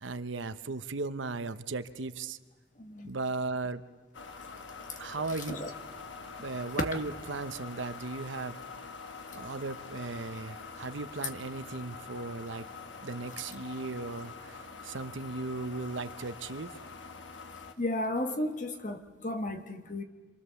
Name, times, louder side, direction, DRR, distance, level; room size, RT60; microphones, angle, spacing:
voice 1, 0.0-2.4 3.0-3.8 5.0-5.6 6.4-8.6 9.3-12.6 13.0-16.7, right 3 dB, 85° right, 0.9 m, -36 dB
voice 2, 2.8-3.1 5.3-5.7 9.3-9.4 17.8-20.0, left 1 dB, 40° left, 1.4 m, -34 dB
sound 1, 4.1-17.7, left 4 dB, 80° left, 1.3 m, -45 dB
27.0 x 25.5 x 7.0 m
head